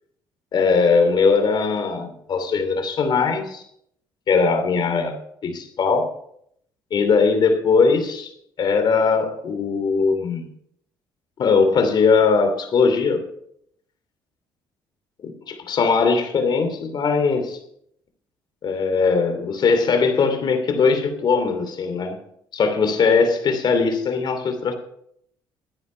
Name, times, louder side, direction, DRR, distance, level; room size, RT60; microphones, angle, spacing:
voice 1, 0.5-3.6 4.3-5.2 5.4-6.1 6.9-8.3 8.6-10.5 11.4-13.2 15.2-17.6 18.6-22.2 22.5-24.7, left 5 dB, 55° left, 7 dB, 2.8 m, -20 dB
13.0 x 9.8 x 5.6 m, 0.71 s
cardioid pair, 90°, 9 cm